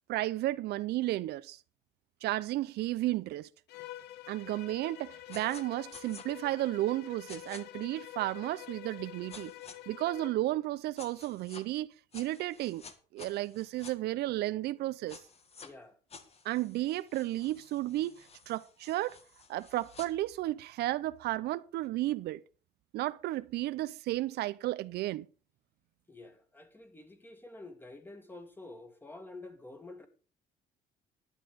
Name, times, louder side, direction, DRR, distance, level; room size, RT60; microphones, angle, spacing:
voice 1, 0.1-1.6 2.2-3.5 4.3-9.5 9.9-11.9 12.1-12.8 13.1-15.2 16.4-18.1 18.5-19.2 19.5-22.4 22.9-25.3, right 16 dB, 75° right, 0.6 m, -33 dB
Bowed string instrument, 3.7-10.4, left 15 dB, 80° left, 1.0 m, -48 dB
sound 1, 5.3-5.6 5.9-6.2 7.3-7.6 9.3-9.8 11.0-11.6 12.1-13.9 15.1-15.7 16.1-20.1, left 5 dB, 35° left, 1.9 m, -52 dB
voice 2, 15.6-16.0 26.1-30.1, left 2 dB, 10° left, 2.3 m, -49 dB
11.5 x 10.0 x 5.2 m
cardioid pair, 110°, 17 cm